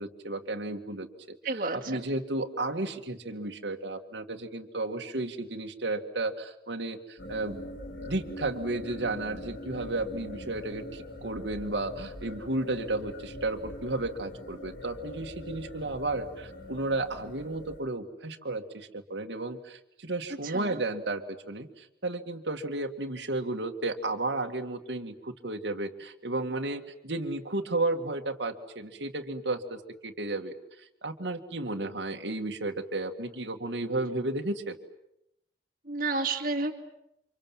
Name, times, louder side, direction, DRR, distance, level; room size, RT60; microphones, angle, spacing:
voice 1, 0.0-7.6 8.1-34.8, right 2 dB, 80° right, 3 dB, 2.2 m, -33 dB
voice 2, 1.4-2.1 20.4-20.8 35.9-36.7, right 3 dB, 50° right, 0 dB, 2.2 m, -31 dB
sound 1, 7.2-17.8, left 1 dB, 80° left, 4.5 m, -43 dB
30.0 x 26.5 x 7.5 m, 0.80 s
head